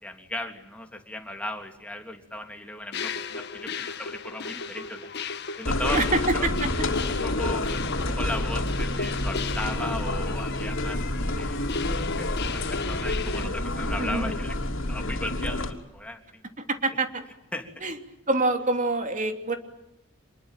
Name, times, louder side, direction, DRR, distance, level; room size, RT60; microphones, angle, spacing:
voice 1, 0.0-5.1 5.6-6.5 7.2-7.8 8.1-14.6 14.9-16.4 17.5-17.8, left 1 dB, 5° left, 3 dB, 3.3 m, -37 dB
sound 1, 2.9-13.5, left 5 dB, 55° left, 1.8 m, -36 dB
sound 2, 5.6-15.7, left 1 dB, 75° left, 3.2 m, -28 dB
voice 2, 5.9-6.7 14.0-14.3 16.6-17.2 17.8-18.0 18.3-19.6, right 2 dB, 40° right, 6 dB, 3.2 m, -26 dB
27.5 x 21.5 x 9.2 m, 0.89 s
head